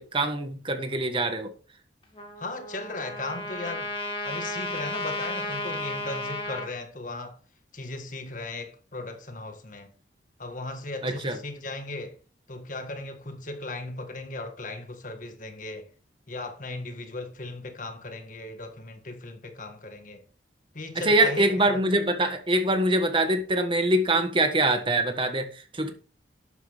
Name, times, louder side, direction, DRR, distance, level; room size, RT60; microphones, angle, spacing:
voice 1, 0.0-1.5 11.0-11.4 21.0-25.9, right 1 dB, 30° right, 1.5 m, -24 dB
Trumpet, 2.2-6.7, left 1 dB, 30° left, 2.5 m, -33 dB
voice 2, 2.4-3.9 4.2-7.4 7.7-9.9 10.4-12.2 12.5-15.9 16.3-20.2 20.7-21.8, left 2 dB, 45° left, 1.7 m, -37 dB
12.0 x 9.2 x 3.6 m
head